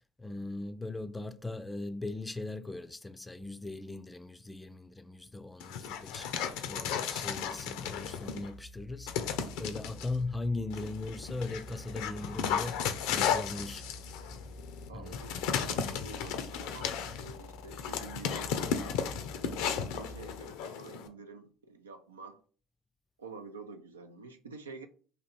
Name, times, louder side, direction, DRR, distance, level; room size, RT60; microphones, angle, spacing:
voice 1, 0.2-6.3 6.6-13.8 14.9-15.2, left 2 dB, 15° left, 0.4 m, -39 dB
Dog, 5.6-8.5 9.1-10.1 10.7-21.1, left 7 dB, 65° left, 0.5 m, -35 dB
sound 1, 6.1-20.6, left 1 dB, 25° right, 0.6 m, -49 dB
voice 2, 14.9-18.6 19.4-22.4 23.2-24.9, right 4 dB, 85° right, 0.4 m, -48 dB
4.1 x 2.8 x 4.2 m
figure-of-eight pair, 60°, 0 cm